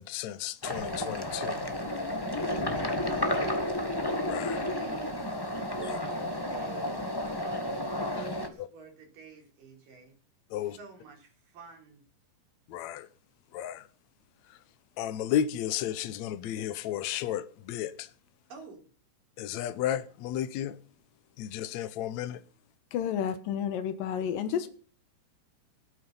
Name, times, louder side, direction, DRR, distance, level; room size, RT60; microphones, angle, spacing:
voice 1, 0.0-1.7 4.2-4.6 5.8-6.0 10.5-10.8 12.7-13.1 13.5-13.9 14.5-14.6 15.0-18.1 19.4-20.8 21.4-22.4, left 10 dB, 70° left, 1.9 m, -33 dB
sound 1, 0.6-8.5, left 1 dB, 15° left, 0.8 m, -32 dB
voice 2, 2.7-3.8 4.4-5.3 5.7-7.0 8.1-10.2 10.6-12.0 18.5-18.9 24.5-24.7, right 4 dB, 75° right, 5.5 m, -49 dB
voice 3, 22.9-24.7, left 8 dB, 85° left, 3.0 m, -30 dB
19.5 x 9.4 x 5.6 m
omnidirectional pair, 3.9 m